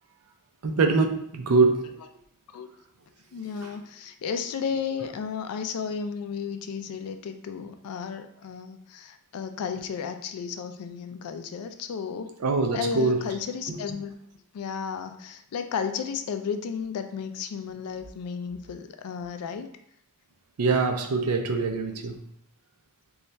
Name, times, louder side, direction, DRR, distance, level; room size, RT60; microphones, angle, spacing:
voice 1, 0.6-1.9 3.6-3.7 12.4-13.2 13.7-13.8 20.6-22.2, right 4 dB, 80° right, 5 dB, 0.5 m, -24 dB
voice 2, 3.3-12.3 12.7-14.2 14.5-19.7, left 6 dB, 75° left, 8 dB, 0.3 m, -33 dB
3.2 x 2.3 x 4.0 m, 0.71 s
head